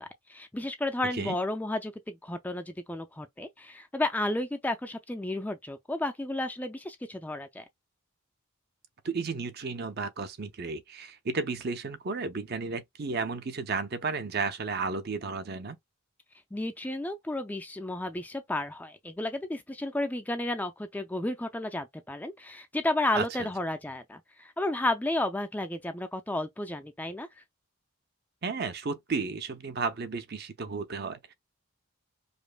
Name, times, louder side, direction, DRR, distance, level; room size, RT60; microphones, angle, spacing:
voice 1, 0.0-7.6 16.5-27.4, left 1 dB, 5° left, 0.3 m, -32 dB
voice 2, 9.0-15.8 23.1-23.2 28.4-31.3, right 4 dB, 45° right, 0.6 m, -33 dB
5.1 x 2.0 x 2.2 m
head